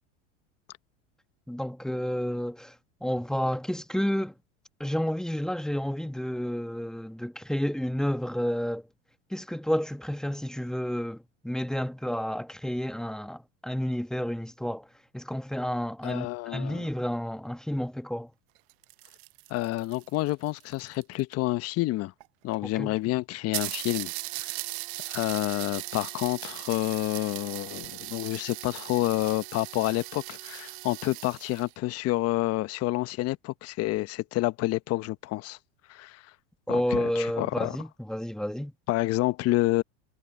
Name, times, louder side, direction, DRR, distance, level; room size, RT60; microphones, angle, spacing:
voice 1, 1.5-2.7 3.0-4.3 4.8-8.8 9.3-14.9 15.1-18.3 22.7-23.0 36.7-38.7, equal, ahead, 2.0 m, -30 dB
voice 2, 16.0-16.9 19.5-22.1 22.4-24.1 24.4-24.6 25.1-35.6 35.9-36.2 36.7-37.8 38.9-39.8, left 18 dB, 45° left, 1.1 m, -29 dB
sound 1, 18.6-21.3 22.2-22.3 22.5-22.6 23.0-23.1 23.5-31.7, right 23 dB, 65° right, 0.9 m, -38 dB
hypercardioid pair, 100°, 35 cm